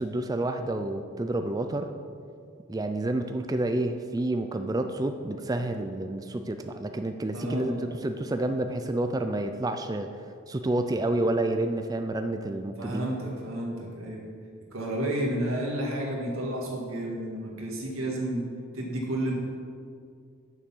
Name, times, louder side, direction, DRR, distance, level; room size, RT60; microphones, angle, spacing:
voice 1, 0.0-1.9 2.7-7.7 8.0-10.1 10.5-13.1, right 2 dB, 20° right, 7 dB, 0.3 m, -29 dB
voice 2, 7.3-7.9 12.8-14.3 14.7-18.5 18.7-19.3, right 1 dB, 80° right, -2 dB, 1.7 m, -31 dB
6.7 x 6.2 x 7.2 m, 2.3 s
head